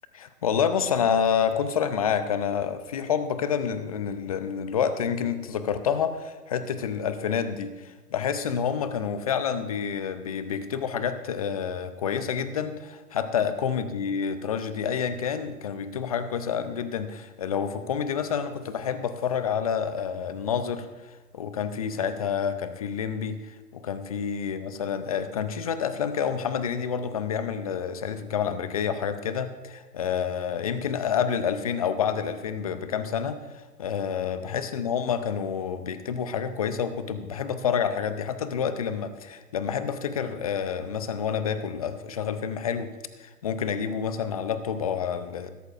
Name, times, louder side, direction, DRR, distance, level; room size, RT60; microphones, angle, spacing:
voice 1, 0.1-42.9 43.2-45.5, left 7 dB, 25° left, 11 dB, 0.5 m, -28 dB
20.5 x 11.0 x 2.5 m, 1.2 s
figure-of-eight pair, 125°, 47 cm